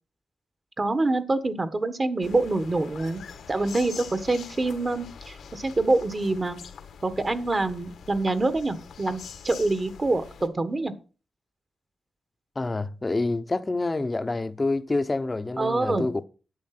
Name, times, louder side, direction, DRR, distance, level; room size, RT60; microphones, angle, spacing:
voice 1, 0.8-3.2 3.5-6.6 7.0-10.9 15.6-16.1, right 2 dB, 30° right, 1.5 m, -26 dB
Moscow Tsaritsyno Park ambience XY mics, 2.2-10.5, left 7 dB, 90° left, 1.8 m, -44 dB
voice 2, 12.6-16.1, left 2 dB, 25° left, 0.9 m, -27 dB
11.0 x 8.3 x 6.0 m
cardioid pair, 95°, 0 cm